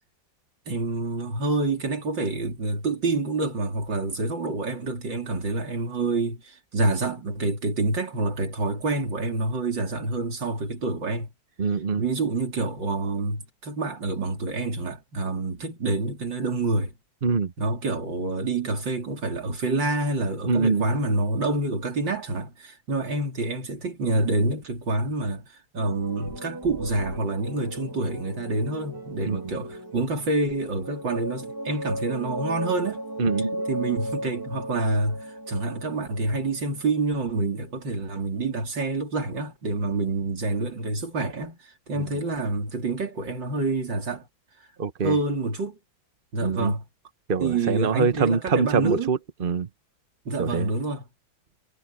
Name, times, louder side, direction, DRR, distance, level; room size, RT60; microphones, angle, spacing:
voice 1, 0.7-11.3 12.0-16.9 17.6-25.4 25.7-33.0 33.7-41.6 41.9-44.3 45.0-45.8 46.3-46.8 47.4-49.1 50.3-51.0, right 2 dB, 65° right, 4.2 m, -27 dB
voice 2, 11.6-12.0 17.2-17.5 20.5-20.8 29.3-29.4 33.2-33.6 42.0-42.1 44.8-45.2 46.4-46.7 47.3-49.7 50.4-50.7, right 5 dB, 35° right, 0.9 m, -24 dB
sound 1, 25.7-37.4, right 1 dB, 10° right, 2.9 m, -36 dB
omnidirectional pair, 2.2 m